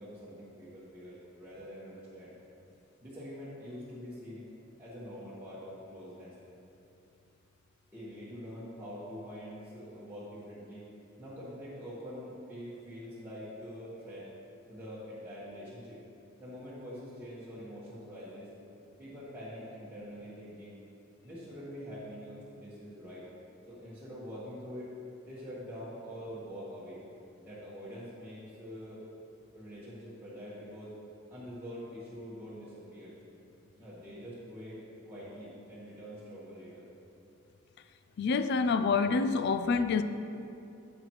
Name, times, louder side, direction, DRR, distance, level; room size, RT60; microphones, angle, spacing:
voice 1, 0.0-2.3 3.0-4.5 4.8-6.3 7.9-10.9 11.2-14.3 14.7-16.0 16.4-18.5 19.0-20.8 21.2-23.2 23.7-24.9 25.2-27.0 27.4-29.0 29.5-30.9 31.3-33.1 33.8-36.9, equal, 10° right, 1.4 m, -45 dB
voice 2, 38.2-40.0, left 4 dB, 55° left, 0.4 m, -27 dB
9.9 x 7.5 x 3.1 m
head